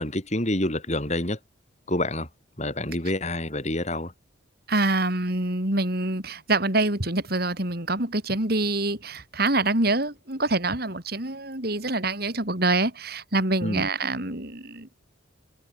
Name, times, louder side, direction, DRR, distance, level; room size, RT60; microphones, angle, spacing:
voice 1, 0.0-1.4 1.9-2.3 2.6-4.1 13.6-13.9, left 1 dB, 35° left, 6.6 m, -27 dB
voice 2, 4.7-14.9, right 2 dB, 50° right, 3.9 m, -25 dB
head